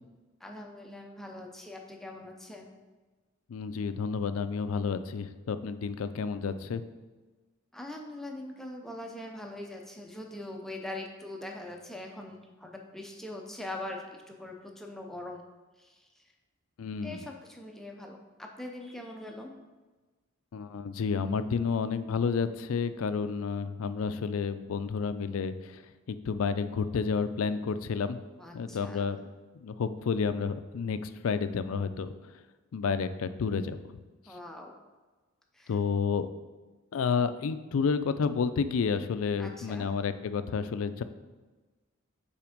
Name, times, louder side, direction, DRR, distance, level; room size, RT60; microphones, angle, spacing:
voice 1, 0.4-2.7 7.7-15.4 15.8-16.1 17.0-19.5 28.4-29.0 34.3-34.8 35.5-35.8 39.4-39.9, left 1 dB, ahead, 1 dB, 0.6 m, -42 dB
voice 2, 3.5-6.8 16.8-17.2 20.5-25.8 26.1-28.2 28.5-29.2 29.6-32.1 32.7-33.8 35.7-36.3 36.9-41.0, left 5 dB, 80° left, 11 dB, 0.4 m, -30 dB
5.8 x 4.3 x 5.1 m, 1.3 s
head